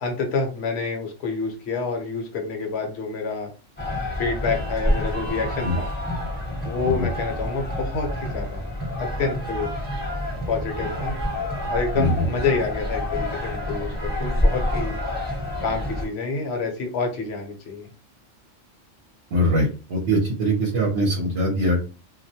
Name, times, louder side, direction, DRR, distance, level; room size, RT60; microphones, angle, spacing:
voice 1, 0.0-3.5 4.2-5.9 6.7-8.6 9.0-9.7 10.5-11.1 11.7-15.0 15.6-17.9, left 4 dB, 60° left, 2 dB, 0.9 m, -28 dB
sound 1, 3.8-16.1, left 1 dB, 10° left, 0.8 m, -28 dB
voice 2, 19.3-21.9, equal, 60° right, -1 dB, 0.9 m, -22 dB
2.3 x 2.1 x 2.7 m, 0.34 s
omnidirectional pair, 1.3 m